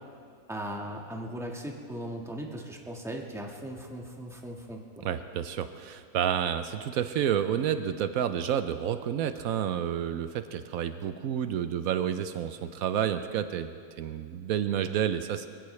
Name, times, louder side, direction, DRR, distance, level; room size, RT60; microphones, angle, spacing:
voice 1, 0.5-5.1, right 1 dB, ahead, 0 dB, 1.3 m, -38 dB
voice 2, 5.0-15.5, right 9 dB, 80° right, 10 dB, 1.1 m, -30 dB
23.5 x 15.5 x 3.2 m, 2.2 s
omnidirectional pair, 1.5 m